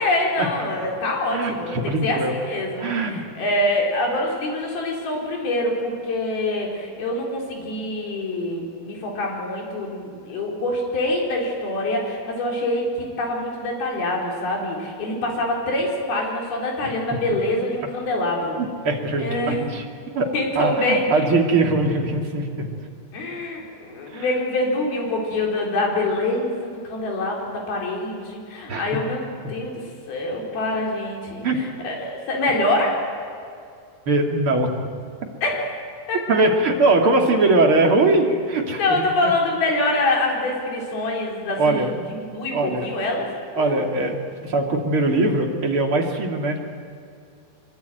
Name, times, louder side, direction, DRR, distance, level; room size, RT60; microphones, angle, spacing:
voice 1, 0.0-12.9 13.2-18.6 19.2-19.6 20.3-21.3 23.1-29.8 30.1-33.0 35.4-35.7 36.1-36.2 38.8-43.3 43.6-43.7, left 2 dB, 85° left, -1 dB, 6.2 m, -25 dB
voice 2, 1.3-2.3 2.8-3.2 18.6-19.8 20.1-22.7 24.1-24.2 28.7-28.9 31.4-31.6 34.1-34.7 36.3-39.0 39.2-39.3 41.6-41.9 42.5-42.9 43.6-44.2 44.4-46.6, right 2 dB, 40° right, 2 dB, 3.1 m, -21 dB
25.0 x 23.5 x 9.3 m, 2.4 s
omnidirectional pair, 4.2 m